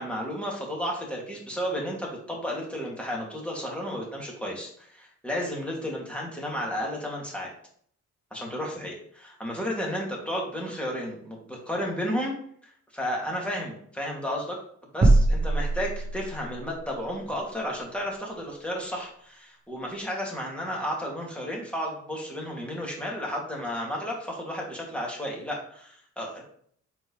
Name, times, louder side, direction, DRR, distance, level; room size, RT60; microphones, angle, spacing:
voice 1, 0.0-7.5 8.3-12.4 12.9-14.6 14.9-26.4, equal, 5° left, -2 dB, 2.5 m, -33 dB
sound 1, 15.0-16.6, right 2 dB, 25° right, 1.0 m, -21 dB
7.9 x 4.7 x 3.3 m, 0.62 s
cardioid pair, 90°, 30 cm